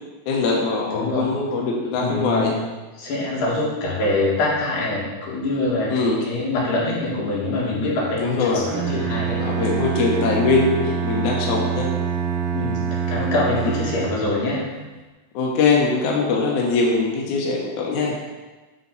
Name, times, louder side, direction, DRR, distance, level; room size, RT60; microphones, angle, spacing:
voice 1, 0.3-2.6 5.9-6.2 8.2-8.6 9.4-11.9 13.6-13.7 15.4-18.2, left 4 dB, 70° left, -2 dB, 2.3 m, -22 dB
voice 2, 0.9-1.3 1.9-2.6 3.0-9.4 12.5-12.8 13.1-14.6, left 2 dB, 90° left, -5 dB, 3.6 m, -24 dB
Bowed string instrument, 8.6-14.5, right 7 dB, 75° right, 1.1 m, -25 dB
7.3 x 7.2 x 4.0 m, 1.2 s
omnidirectional pair, 3.8 m